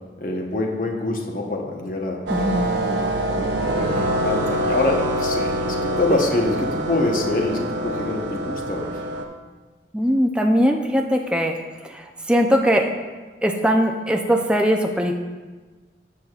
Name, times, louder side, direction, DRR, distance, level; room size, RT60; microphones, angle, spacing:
voice 1, 0.2-2.2 2.8-9.0, left 2 dB, 50° left, 1 dB, 1.0 m, -25 dB
voice 2, 2.3-2.7 9.9-11.5 11.8-12.9 13.4-15.2, equal, 5° right, 2 dB, 0.5 m, -20 dB
sound 1, 2.3-9.2, right 1 dB, 80° right, 0.7 m, -25 dB
13.0 x 6.3 x 2.4 m, 1.3 s
head